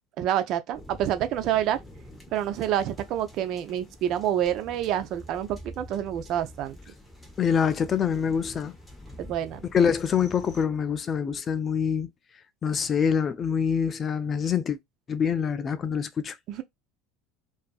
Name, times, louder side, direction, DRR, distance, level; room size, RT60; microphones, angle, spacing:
voice 1, 0.2-1.8 2.3-6.8 9.2-9.6 16.5-16.6, right 11 dB, 55° right, 0.4 m, -27 dB
sound 1, 0.7-10.6, equal, 10° left, 0.9 m, -47 dB
voice 2, 7.4-8.7 9.7-12.1 12.6-14.8 15.1-16.3, left 7 dB, 30° left, 0.3 m, -25 dB
2.5 x 2.4 x 2.3 m
supercardioid pair, 120°, 0 cm